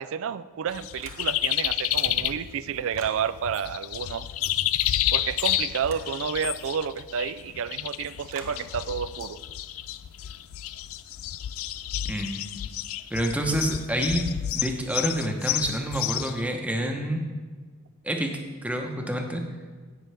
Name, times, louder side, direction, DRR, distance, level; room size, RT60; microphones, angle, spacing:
voice 1, 0.0-4.3 5.1-9.4, right 7 dB, 60° right, 15 dB, 0.4 m, -30 dB
sound 1, 0.7-16.5, left 13 dB, 65° left, 0.4 m, -30 dB
sound 2, 1.0-1.6 1.9-3.2 5.8-6.1 8.3-8.6, right 2 dB, 40° right, 1.4 m, -43 dB
voice 2, 13.1-17.2 18.0-18.3 18.6-19.4, right 1 dB, 5° right, 3 dB, 0.9 m, -28 dB
17.0 x 6.0 x 3.4 m, 1.4 s
head